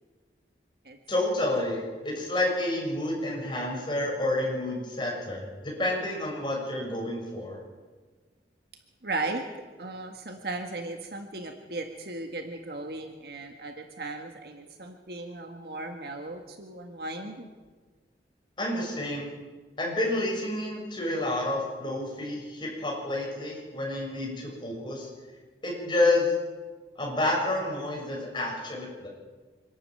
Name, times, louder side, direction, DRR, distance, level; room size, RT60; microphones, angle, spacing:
voice 1, 1.1-7.6 18.6-19.3 19.8-25.1 25.6-26.3 27.0-29.1, left 1 dB, 25° left, -2 dB, 6.6 m, -29 dB
voice 2, 9.0-9.4 9.8-17.5, right 2 dB, 60° right, 4 dB, 1.7 m, -36 dB
25.5 x 12.0 x 9.0 m, 1.4 s
head